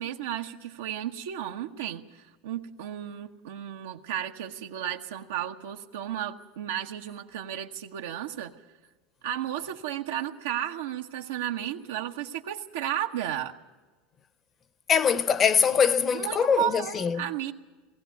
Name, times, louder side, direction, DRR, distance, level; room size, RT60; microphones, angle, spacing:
voice 1, 0.0-8.5 9.2-13.5 16.1-17.5, right 11 dB, 85° right, 1.0 m, -33 dB
voice 2, 14.9-17.3, left 7 dB, 35° left, 1.0 m, -23 dB
19.0 x 16.0 x 9.3 m
hypercardioid pair, 100°, 0 cm